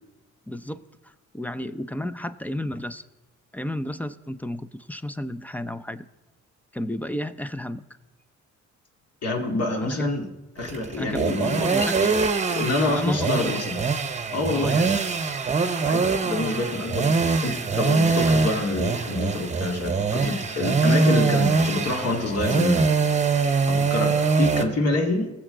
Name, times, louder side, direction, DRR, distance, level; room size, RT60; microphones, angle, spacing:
voice 1, 0.5-3.0 3.5-6.0 6.7-7.8 9.8-10.1 11.0-12.2 12.9-13.5 14.5-14.9, left 1 dB, 5° left, 12 dB, 0.5 m, -32 dB
voice 2, 9.2-11.7 12.5-13.8 14.3-14.7 15.9-22.9 23.3-25.3, left 2 dB, 55° left, 1 dB, 2.2 m, -27 dB
sound 1, 10.6-24.6, right 4 dB, 25° right, 0.9 m, -23 dB
20.0 x 7.4 x 3.9 m, 1.0 s
cardioid pair, 90°, 30 cm